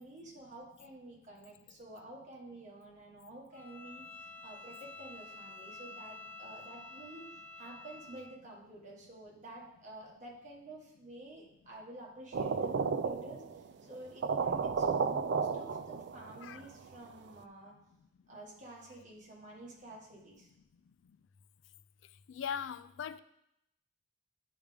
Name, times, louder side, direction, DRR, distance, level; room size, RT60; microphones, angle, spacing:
voice 1, 0.0-17.7 18.3-20.5, right 1 dB, 40° right, -3 dB, 1.7 m, -50 dB
Bowed string instrument, 3.5-8.4, left 2 dB, 10° left, 0.4 m, -49 dB
sound 1, 12.3-13.6 13.9-14.0 14.2-16.4, right 5 dB, 65° right, 0.4 m, -32 dB
voice 2, 22.3-23.2, left 7 dB, 90° left, 14 dB, 0.4 m, -39 dB
9.3 x 5.0 x 3.4 m, 0.81 s
head